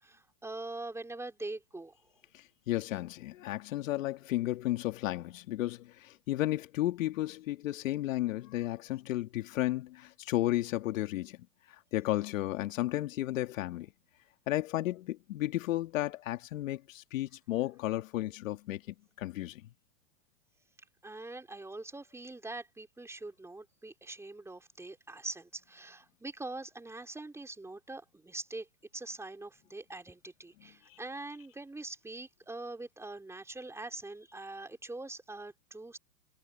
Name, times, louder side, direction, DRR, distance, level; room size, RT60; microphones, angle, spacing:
voice 1, 0.0-1.9 21.0-28.7 28.9-36.0, right 2 dB, 5° right, 4.2 m, -43 dB
voice 2, 2.3-11.4 11.7-13.9 14.5-19.6 30.9-31.0, left 15 dB, 60° left, 2.2 m, -33 dB
hypercardioid pair, 120°, 45 cm